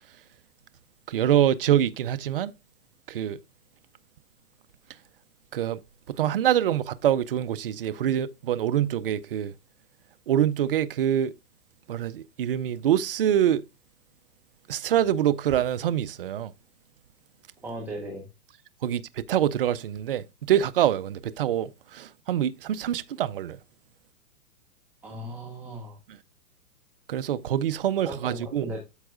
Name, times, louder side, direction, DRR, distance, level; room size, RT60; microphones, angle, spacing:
voice 1, 1.1-2.5 3.1-3.4 5.5-5.8 6.2-9.5 10.3-11.3 11.9-13.6 14.7-16.5 18.8-23.6 27.1-28.7, right 10 dB, 40° right, 0.4 m, -25 dB
voice 2, 17.6-18.3 25.0-26.0 28.0-28.8, right 1 dB, 5° right, 1.0 m, -37 dB
13.0 x 4.5 x 2.5 m
hypercardioid pair, 160°, 46 cm